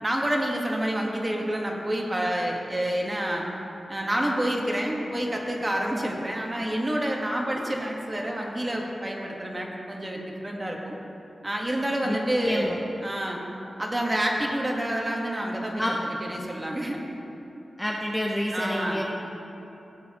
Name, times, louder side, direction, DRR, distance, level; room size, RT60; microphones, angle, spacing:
voice 1, 0.0-3.4 3.9-11.0 11.4-13.4 13.8-15.8 16.2-17.0 18.5-19.0, right 1 dB, 20° right, -1 dB, 1.3 m, -28 dB
voice 2, 12.4-12.8 15.8-15.9 17.8-19.0, equal, 5° left, -1 dB, 0.6 m, -28 dB
15.5 x 8.0 x 2.9 m, 3.0 s
wide cardioid pair, 90°, 0 cm